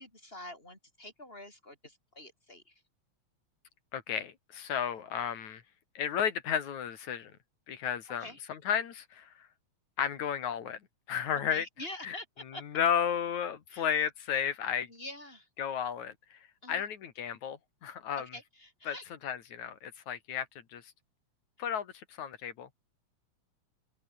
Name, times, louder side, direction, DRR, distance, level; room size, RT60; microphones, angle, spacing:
voice 1, 0.0-2.8 8.1-8.4 11.5-12.6 13.7-13.9 14.9-15.5 16.6-16.8 18.2-19.0, left 1 dB, 15° left, 8.1 m, -46 dB
voice 2, 3.9-5.6 6.0-7.3 7.7-9.5 10.0-10.8 11.1-11.7 12.0-12.2 12.6-14.9 15.6-16.4 16.7-18.3 18.9-19.0 19.2-20.8 21.6-22.7, left 8 dB, 75° left, 3.5 m, -33 dB
omnidirectional pair, 3.3 m